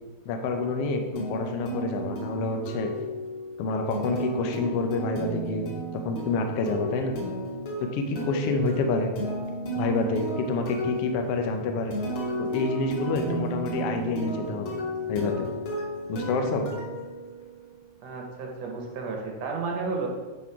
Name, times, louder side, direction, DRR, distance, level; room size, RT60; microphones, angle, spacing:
voice 1, 0.2-2.9 3.6-7.2 7.8-9.1 9.7-11.9 12.4-14.8 15.1-15.5 16.1-16.7, left 3 dB, 85° left, 4 dB, 1.3 m, -28 dB
sound 1, 1.2-17.8, right 1 dB, 50° left, 2.1 m, -34 dB
voice 2, 18.0-20.1, right 4 dB, 65° right, 1 dB, 2.0 m, -32 dB
10.0 x 4.2 x 4.7 m, 1.3 s
omnidirectional pair, 3.7 m